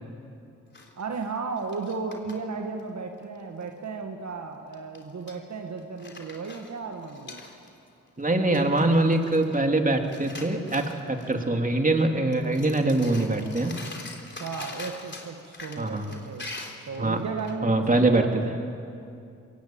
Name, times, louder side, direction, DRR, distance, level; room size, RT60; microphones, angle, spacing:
sound 1, 0.7-2.3 2.8-2.9 3.2-3.7 4.7-5.4 5.8-7.9 8.2-8.3 8.5-9.8 10.0-11.5 11.9-12.0 12.3-17.5, left 3 dB, 35° left, 3.7 m, -43 dB
voice 1, 1.0-7.4 14.3-16.5 16.9-18.5, right 4 dB, 60° right, 4 dB, 1.7 m, -34 dB
voice 2, 8.2-13.7 15.8-16.1 17.0-17.2 17.6-18.2, right 2 dB, 25° right, 4 dB, 2.8 m, -23 dB
22.0 x 16.5 x 8.9 m, 2.5 s
supercardioid pair, 45°, 32 cm